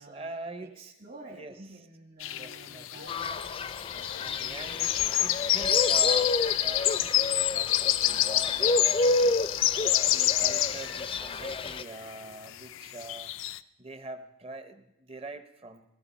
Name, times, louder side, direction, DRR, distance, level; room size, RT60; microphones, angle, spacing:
voice 1, 0.0-0.9 1.3-1.5 2.3-2.9 3.9-9.3 10.1-13.3 13.8-15.8, right 2 dB, 30° right, 10 dB, 0.8 m, -44 dB
voice 2, 0.6-3.4 4.2-4.7, right 2 dB, 50° right, -1 dB, 1.9 m, -50 dB
sound 1, 2.2-12.2 12.5-13.6, left 14 dB, 85° left, 0.4 m, -28 dB
Fowl, 3.1-11.8, left 3 dB, 30° left, 0.5 m, -30 dB
19.0 x 15.0 x 4.2 m, 0.88 s
head